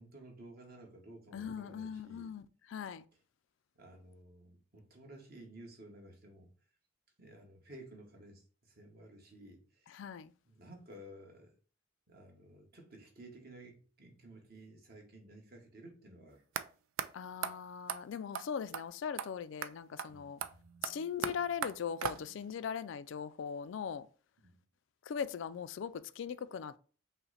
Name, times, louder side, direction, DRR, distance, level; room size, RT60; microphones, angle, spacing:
voice 1, 0.0-2.3 3.7-6.5 7.2-10.0 10.5-11.5 12.1-16.4 20.1-20.3 24.4-24.6, right 1 dB, 50° right, 1.2 m, -54 dB
voice 2, 1.3-3.0 9.9-10.3 17.1-20.4 20.8-24.1 25.1-26.8, left 7 dB, 70° left, 0.3 m, -40 dB
sound 1, 16.6-16.7 17.0-17.1 17.4-17.5 17.9-18.0 18.3-18.5 18.7-18.8 19.2-19.3 19.6-19.7 20.0-20.1 20.4-22.5, right 8 dB, 85° right, 0.4 m, -38 dB
5.6 x 2.1 x 4.0 m
head